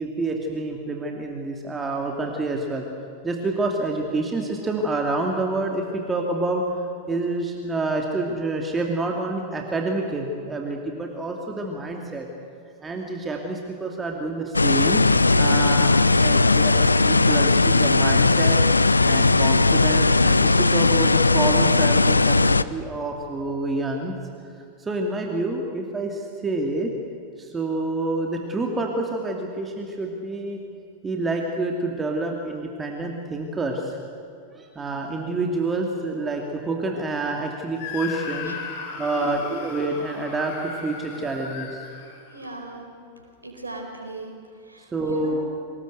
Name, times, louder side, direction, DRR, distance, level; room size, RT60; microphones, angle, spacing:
voice 1, 0.0-2.8 3.2-6.6 7.1-12.3 12.8-18.6 19.0-24.2 24.5-26.9 27.4-30.6 31.0-34.0 34.5-38.6 39.0-41.8 44.9-45.4, right 2 dB, 15° right, 1 dB, 2.6 m, -28 dB
sound 1, 14.5-22.6, left 3 dB, 80° left, 0.6 m, -18 dB
Screaming, 37.8-42.6, left 5 dB, 50° left, 4.2 m, -36 dB
voice 2, 42.3-42.9 43.4-44.3 44.6-45.4, right 2 dB, 80° right, 3 dB, 4.6 m, -38 dB
25.0 x 20.5 x 8.1 m, 2.6 s
figure-of-eight pair, 90°, 0 cm